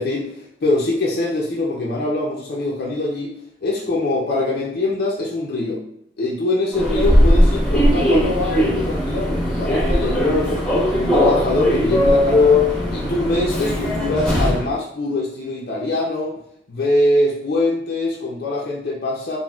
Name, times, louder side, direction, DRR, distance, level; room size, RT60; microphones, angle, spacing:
voice 1, 0.0-3.3 3.6-5.8 6.2-10.6 10.9-16.3 16.7-19.4, left 2 dB, 55° left, -3 dB, 0.4 m, -23 dB
Human voice / Subway metro underground, 6.7-14.7, left 1 dB, 5° left, 1.4 m, -18 dB
3.8 x 2.0 x 2.3 m, 0.73 s
head